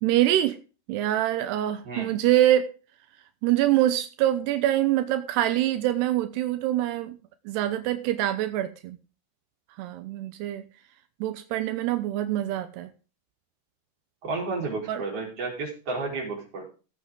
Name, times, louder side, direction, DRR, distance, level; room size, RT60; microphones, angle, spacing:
voice 1, 0.0-0.6 0.9-2.7 3.4-7.2 7.5-9.0 9.8-10.6 11.2-12.9 14.9-15.0, right 13 dB, 85° right, 9 dB, 2.9 m, -24 dB
voice 2, 14.2-16.7, right 3 dB, 35° right, -1 dB, 5.0 m, -32 dB
16.5 x 8.4 x 3.8 m, 0.35 s
omnidirectional pair, 4.7 m